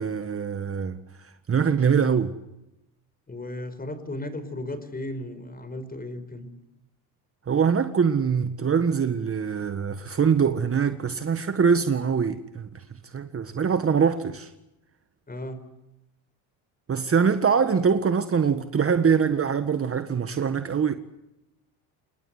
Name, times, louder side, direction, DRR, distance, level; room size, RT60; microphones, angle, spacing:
voice 1, 0.0-2.3 7.5-12.8 13.1-14.5 16.9-20.9, right 6 dB, 30° right, 1.7 m, -23 dB
voice 2, 3.3-6.5 15.3-15.6, left 1 dB, 20° left, 5.1 m, -35 dB
28.0 x 19.5 x 8.1 m
supercardioid pair, 90°, 45 cm